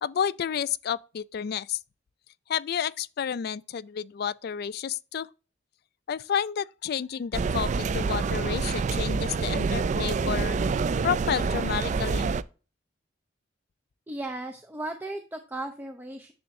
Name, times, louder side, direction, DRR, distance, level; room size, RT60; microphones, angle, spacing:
voice 1, 0.0-1.8 2.5-5.3 6.1-10.6 11.0-12.3, left 8 dB, 55° left, 0.3 m, -30 dB
sound 1, 7.3-12.4, right 4 dB, 40° right, 0.3 m, -27 dB
voice 2, 14.1-16.3, right 2 dB, 10° right, 0.7 m, -36 dB
10.0 x 6.9 x 2.7 m
head